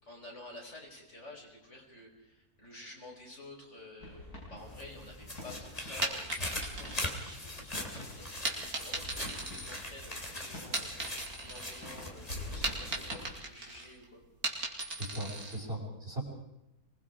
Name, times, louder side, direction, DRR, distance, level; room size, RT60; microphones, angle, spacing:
voice 1, 0.0-14.2, left 1 dB, 50° left, -1 dB, 5.4 m, -51 dB
sound 1, 4.0-13.4, left 1 dB, 85° left, 7.1 m, -47 dB
sound 2, 4.6-13.3 13.7-13.8, left 1 dB, 25° left, 3.1 m, -41 dB
sound 3, 6.0-7.8 8.4-10.2 10.6-11.9 12.2-15.6, right 2 dB, 75° right, 3.6 m, -38 dB
voice 2, 15.0-16.2, right 1 dB, 40° right, 0 dB, 5.4 m, -38 dB
25.5 x 20.5 x 4.9 m, 0.90 s
omnidirectional pair, 1.6 m